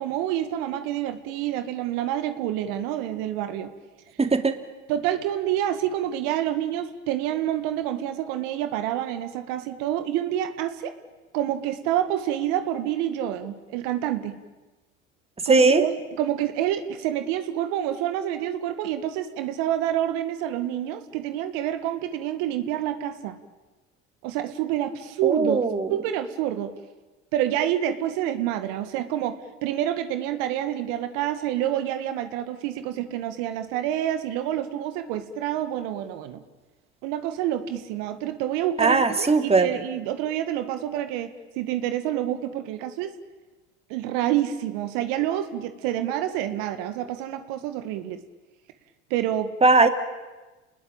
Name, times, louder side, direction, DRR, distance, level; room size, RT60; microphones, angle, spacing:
voice 1, 0.0-3.7 4.9-10.9 11.3-14.4 15.5-23.4 24.2-25.6 25.9-26.7 27.3-36.4 37.0-43.1 43.9-48.2 49.1-49.5, right 11 dB, 70° right, 9 dB, 1.9 m, -28 dB
voice 2, 4.2-4.6 15.4-15.8 25.2-25.9 38.8-39.7 49.6-49.9, right 3 dB, 20° right, 7 dB, 2.6 m, -19 dB
29.5 x 20.5 x 8.9 m, 1.2 s
hypercardioid pair, 80°, 34 cm